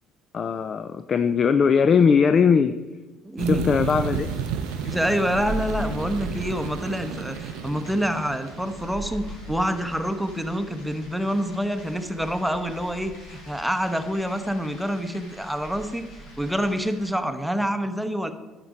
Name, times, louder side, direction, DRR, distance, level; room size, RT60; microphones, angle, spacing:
voice 1, 0.3-2.8 3.5-4.3, left 6 dB, 45° left, 11 dB, 0.4 m, -20 dB
voice 2, 3.2-3.7 4.9-18.3, equal, ahead, 7 dB, 0.9 m, -27 dB
sound 1, 3.4-10.0, right 8 dB, 75° right, 0.5 m, -33 dB
sound 2, 3.9-17.1, equal, 85° left, 2.8 m, -40 dB
10.5 x 5.9 x 5.2 m, 1.3 s
hypercardioid pair, 65°, 0 cm